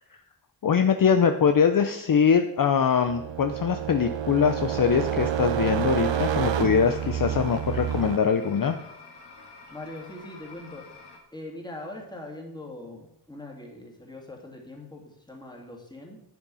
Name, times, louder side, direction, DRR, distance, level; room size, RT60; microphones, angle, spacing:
voice 1, 0.6-8.8, left 7 dB, 50° left, 8 dB, 0.7 m, -22 dB
sound 1, 3.1-8.2, right 9 dB, 85° right, 0.9 m, -28 dB
sound 2, 6.0-11.2, left 3 dB, 65° left, 2.3 m, -48 dB
voice 2, 9.7-10.9 11.3-16.2, left 1 dB, 10° left, 0 dB, 2.8 m, -41 dB
11.0 x 9.0 x 5.6 m, 0.82 s
wide cardioid pair, 130°, 43 cm